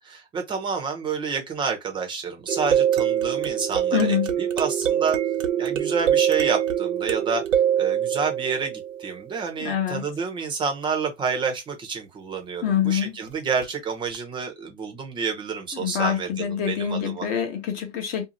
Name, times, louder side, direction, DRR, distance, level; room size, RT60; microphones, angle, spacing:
voice 1, 0.0-5.2 5.6-7.4 7.8-17.3, right 5 dB, 15° right, 0.7 m, -29 dB
sound 1, 2.5-9.4 13.6-13.7 14.1-14.2, right 10 dB, 80° right, 0.7 m, -24 dB
voice 2, 3.9-4.3 9.6-10.1 12.6-13.1 15.7-18.3, left 8 dB, 25° left, 0.8 m, -25 dB
2.7 x 2.3 x 2.9 m
hypercardioid pair, 115°, 37 cm